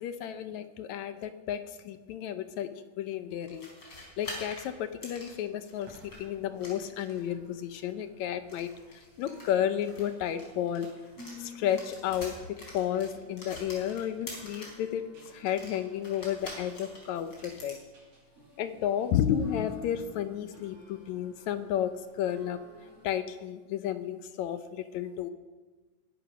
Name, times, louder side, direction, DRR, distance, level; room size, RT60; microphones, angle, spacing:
voice 1, 0.0-10.9 11.4-17.8 18.6-22.6 23.0-25.3, left 10 dB, 75° left, 10 dB, 1.7 m, -32 dB
sound 1, 3.4-6.2 6.6-7.3 8.4-11.4 11.6-14.8 15.2-17.8, left 1 dB, 30° left, 4.7 m, -46 dB
sound 2, 5.6-23.2, left 2 dB, 65° right, 6.3 m, -55 dB
20.5 x 11.0 x 6.1 m, 1.3 s
omnidirectional pair, 3.9 m